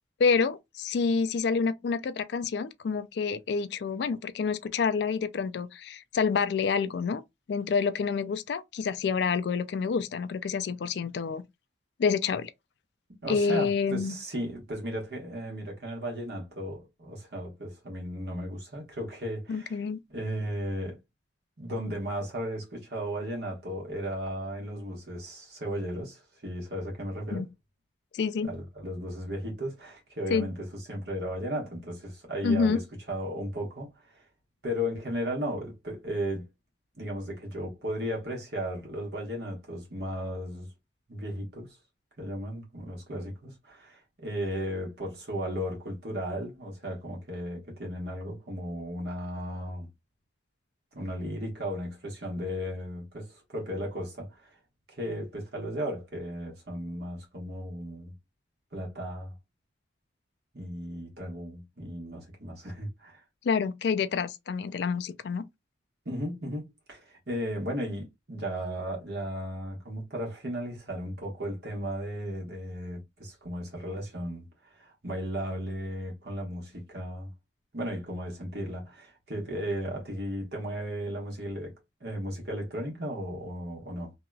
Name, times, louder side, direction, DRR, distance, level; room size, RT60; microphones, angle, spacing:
voice 1, 0.2-7.2 7.5-11.4 12.0-12.5 13.3-14.1 19.5-20.0 27.3-27.5 28.1-28.5 30.3-30.5 32.4-32.8 63.4-65.4, left 5 dB, 65° left, 0.3 m, -28 dB
voice 2, 13.2-19.8 20.1-21.0 21.6-27.5 28.4-34.3 34.6-36.5 37.0-40.7 41.1-41.8 42.2-49.9 50.9-54.6 54.9-58.1 58.7-59.3 60.5-63.2 66.0-77.3 77.7-84.1, equal, 60° right, 1.3 m, -35 dB
2.8 x 2.8 x 2.3 m
head